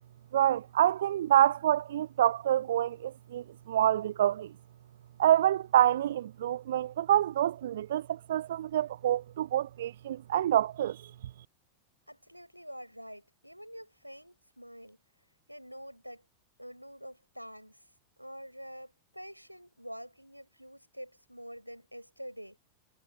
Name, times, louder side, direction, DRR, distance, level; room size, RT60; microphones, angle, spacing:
voice 1, 0.3-4.5 5.2-11.1, right 11 dB, 60° right, 0.6 m, -27 dB
voice 2, 12.1-15.0 15.5-16.2 16.6-17.8 18.2-22.6, equal, 90° right, 6.8 m, -46 dB
figure-of-eight pair, 90°, 0 cm